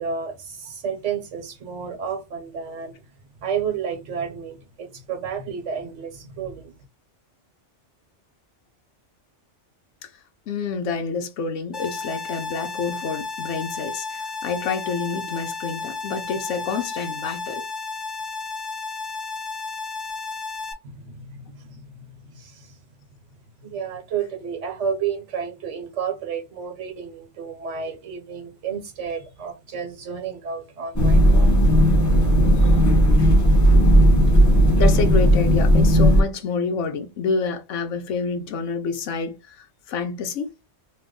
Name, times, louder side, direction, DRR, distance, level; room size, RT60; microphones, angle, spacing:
voice 1, 0.0-3.0 3.4-6.7 20.8-22.7 23.6-31.5, right 7 dB, 75° right, 1.2 m, -31 dB
voice 2, 10.5-17.6 32.6-32.7 33.1-33.4 34.8-40.5, left 4 dB, 80° left, 1.0 m, -28 dB
sound 1, 11.7-20.7, left 4 dB, 40° left, 0.3 m, -33 dB
sound 2, 31.0-36.2, equal, 15° left, 0.9 m, -15 dB
2.9 x 2.1 x 3.6 m
omnidirectional pair, 1.2 m